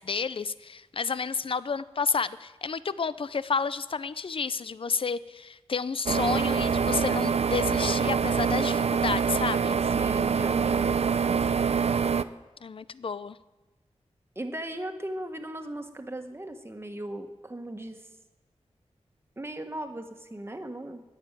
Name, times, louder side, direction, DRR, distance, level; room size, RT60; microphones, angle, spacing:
voice 1, 0.0-9.8 12.6-13.4, left 5 dB, 50° left, 16 dB, 0.5 m, -30 dB
sound 1, 6.1-12.2, right 6 dB, 65° right, 0.5 m, -25 dB
voice 2, 9.9-11.7 14.3-18.1 19.4-21.0, right 1 dB, 20° right, 5 dB, 1.6 m, -37 dB
11.5 x 9.8 x 9.0 m, 1.1 s
wide cardioid pair, 60°, 12 cm